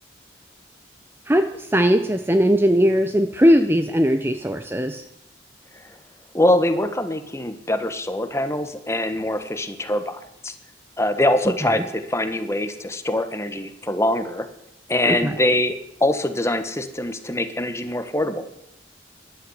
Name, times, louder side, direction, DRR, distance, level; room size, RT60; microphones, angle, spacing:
voice 1, 1.3-5.0 11.5-11.8 15.1-15.4, equal, 10° right, 8 dB, 0.6 m, -19 dB
voice 2, 6.3-10.5 11.0-14.5 14.9-15.7 16.0-18.5, left 1 dB, 15° left, 9 dB, 1.3 m, -23 dB
14.0 x 11.5 x 8.0 m, 0.82 s
head